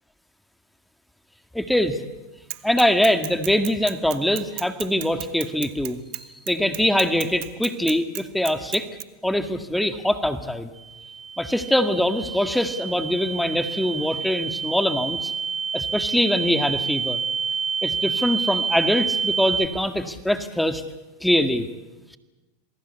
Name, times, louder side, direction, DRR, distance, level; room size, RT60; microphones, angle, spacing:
voice 1, 1.5-2.0 2.6-6.0 6.5-8.9 9.2-10.7 11.4-15.3 15.7-17.2 17.8-20.8 21.2-21.7, left 1 dB, 5° left, 8 dB, 1.8 m, -23 dB
Bicycle / Mechanisms, 2.5-9.0, right 26 dB, 60° right, 1.5 m, -34 dB
sound 1, 10.8-19.7, right 6 dB, 25° right, 2.6 m, -28 dB
28.0 x 21.0 x 8.3 m, 1.1 s
hypercardioid pair, 110°, 0 cm